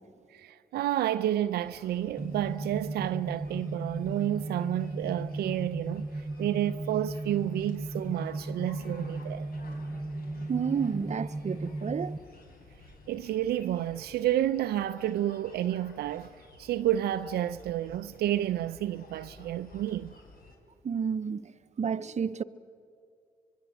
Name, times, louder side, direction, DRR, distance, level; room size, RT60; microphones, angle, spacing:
voice 1, 0.3-9.5 13.1-16.3 16.6-20.1, right 12 dB, 75° right, 0.5 m, -30 dB
sound 1, 1.5-20.6, left 2 dB, 65° left, 4.5 m, -53 dB
sound 2, 2.2-12.2, right 2 dB, 15° right, 0.7 m, -36 dB
voice 2, 10.5-12.2 20.8-22.4, right 6 dB, 45° right, 0.8 m, -31 dB
25.5 x 22.0 x 7.9 m
supercardioid pair, 55°, 17 cm